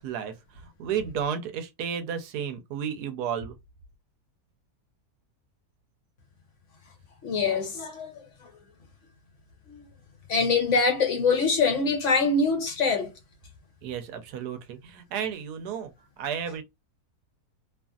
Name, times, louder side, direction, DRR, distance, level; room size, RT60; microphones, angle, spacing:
voice 1, 0.0-3.6 13.8-15.9 16.2-16.6, right 8 dB, 85° right, 1.2 m, -32 dB
voice 2, 7.2-8.2 9.7-9.8 10.3-13.1, left 4 dB, 60° left, 1.0 m, -24 dB
2.8 x 2.5 x 2.3 m
omnidirectional pair, 1.6 m